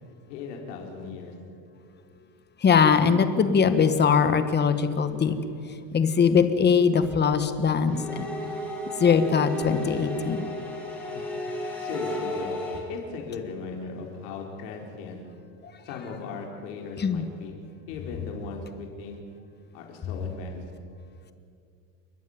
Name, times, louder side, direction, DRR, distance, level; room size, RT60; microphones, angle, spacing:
voice 1, 0.3-1.3 11.1-11.2 11.5-12.5 12.9-15.2 15.8-17.6 17.9-19.2 19.7-20.6, left 5 dB, 80° left, 1 dB, 4.4 m, -37 dB
voice 2, 2.6-5.3 5.7-8.3 9.0-10.5 15.6-15.7 17.0-17.2, left 6 dB, 20° left, 10 dB, 1.4 m, -21 dB
sound 1, 7.9-12.8, equal, 5° left, 5.5 m, -33 dB
29.5 x 11.5 x 9.7 m, 2.4 s
cardioid pair, 145°, 46 cm